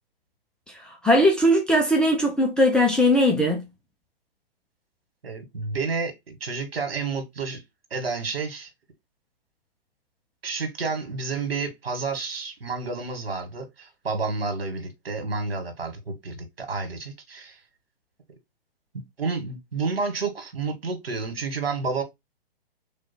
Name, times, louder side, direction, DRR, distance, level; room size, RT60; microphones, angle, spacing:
voice 1, 1.0-3.6, equal, 5° left, 0.5 m, -19 dB
voice 2, 5.2-7.6 7.9-8.7 10.4-17.6 19.2-22.0, right 4 dB, 75° right, 2.0 m, -30 dB
3.8 x 3.1 x 4.5 m
figure-of-eight pair, 125°, 30 cm